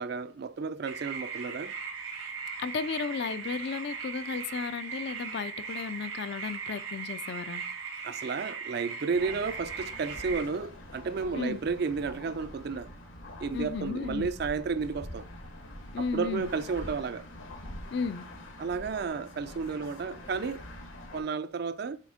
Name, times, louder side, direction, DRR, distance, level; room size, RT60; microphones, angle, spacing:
voice 1, 0.0-1.7 8.0-12.9 13.4-15.3 16.0-17.2 18.6-20.6 21.1-22.0, right 5 dB, 50° right, 0.4 m, -32 dB
sound 1, 0.8-10.4, right 6 dB, 85° right, 1.8 m, -38 dB
voice 2, 2.6-7.6 11.3-11.6 13.5-14.3 15.9-16.5 17.9-18.2, left 5 dB, 55° left, 0.4 m, -34 dB
sound 2, 9.1-21.2, left 1 dB, 80° left, 1.5 m, -45 dB
7.4 x 3.5 x 4.9 m
head